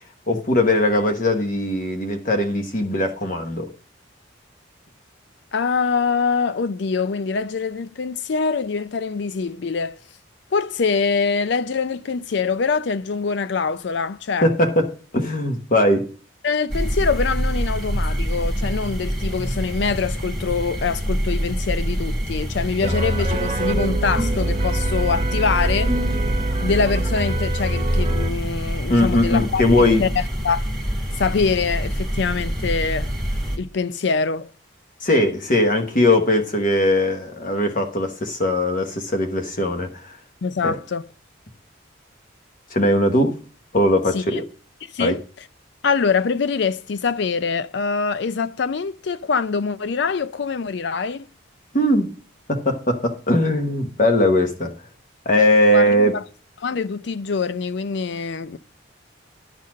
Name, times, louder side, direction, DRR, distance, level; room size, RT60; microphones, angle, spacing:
voice 1, 0.3-3.7 14.4-16.1 28.9-30.0 35.0-40.0 40.6-40.8 42.7-43.3 43.7-44.4 45.0-45.2 51.7-52.1 52.5-54.7 55.2-56.1, left 1 dB, 40° left, 1.1 m, -19 dB
voice 2, 5.5-10.0 10.5-14.5 16.4-26.0 26.6-29.6 30.0-30.6 31.2-33.1 33.6-34.5 40.4-41.0 44.1-44.4 44.9-45.2 45.8-51.2 55.7-56.2 56.6-58.6, left 5 dB, 60° left, 0.4 m, -24 dB
sound 1, 16.7-33.6, equal, ahead, 1.3 m, -26 dB
sound 2, 22.8-28.3, right 1 dB, 25° right, 0.9 m, -24 dB
10.5 x 4.1 x 6.2 m
head